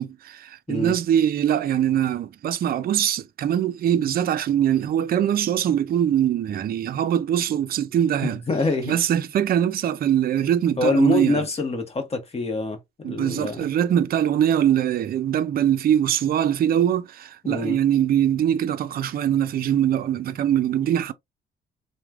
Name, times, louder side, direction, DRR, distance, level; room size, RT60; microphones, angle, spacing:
voice 1, 0.0-8.4 8.9-11.4 13.0-21.1, right 10 dB, 50° right, 0.4 m, -22 dB
voice 2, 8.2-9.0 10.8-13.7 17.4-17.8, left 2 dB, 30° left, 1.0 m, -25 dB
3.1 x 2.1 x 2.3 m
cardioid pair, 90°, 20 cm